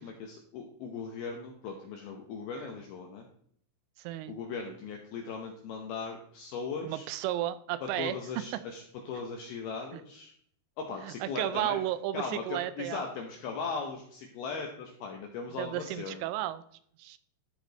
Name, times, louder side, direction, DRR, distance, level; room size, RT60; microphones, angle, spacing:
voice 1, 0.0-3.3 4.3-7.1 7.8-10.3 10.8-11.8 12.1-16.2, left 5 dB, 80° left, 1 dB, 2.2 m, -38 dB
voice 2, 4.0-4.3 6.8-8.4 9.9-10.0 11.0-13.0 15.6-16.6 17.0-17.2, right 13 dB, 90° right, 14 dB, 3.1 m, -33 dB
12.5 x 5.0 x 3.9 m, 0.64 s
omnidirectional pair, 5.6 m